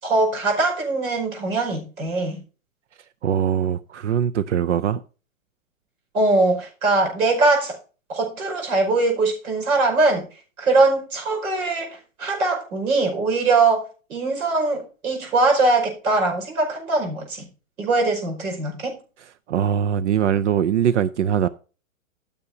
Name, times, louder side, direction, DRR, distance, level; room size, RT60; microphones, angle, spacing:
voice 1, 0.0-2.4 6.1-7.8 8.1-10.2 10.6-13.8 14.1-17.5 17.8-19.0, right 3 dB, 85° right, 5.2 m, -21 dB
voice 2, 3.2-5.0 19.5-21.5, right 9 dB, 60° right, 0.5 m, -21 dB
15.0 x 7.0 x 2.7 m
hypercardioid pair, 165°, 41 cm